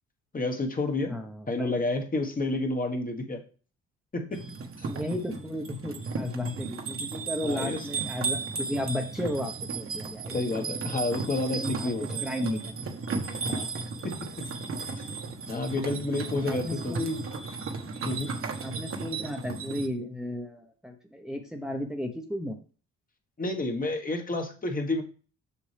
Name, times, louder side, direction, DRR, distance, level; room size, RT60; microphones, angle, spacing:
voice 1, 0.3-1.2 1.5-3.4 4.1-4.4 4.8-4.9 7.4-7.9 10.3-12.2 13.4-13.7 14.0-14.3 15.5-16.9 18.0-18.3 23.4-25.0, left 2 dB, 30° left, 3 dB, 1.4 m, -30 dB
voice 2, 1.0-1.8 4.9-10.3 11.5-12.7 16.5-17.3 18.6-22.6, left 1 dB, ahead, 2 dB, 1.0 m, -34 dB
sound 1, 4.3-19.9, right 4 dB, 45° right, 1.3 m, -35 dB
7.1 x 6.2 x 3.4 m, 0.38 s
cardioid pair, 90°, 30 cm